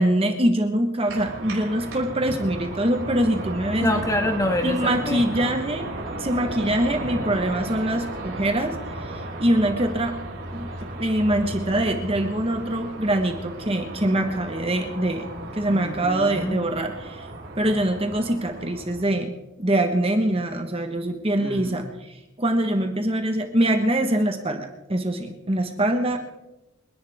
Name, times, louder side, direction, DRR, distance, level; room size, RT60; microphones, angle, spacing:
voice 1, 0.0-3.9 4.6-5.9 6.2-8.8 9.0-10.1 10.5-15.2 15.5-17.3 17.5-26.2, right 1 dB, 25° right, 5 dB, 1.3 m, -24 dB
sound 1, 1.1-19.0, right 1 dB, 60° right, 6.3 m, -35 dB
voice 2, 3.8-5.5 15.7-16.6 21.4-21.9, left 1 dB, 15° left, 4 dB, 1.5 m, -27 dB
29.0 x 11.0 x 3.6 m, 0.95 s
head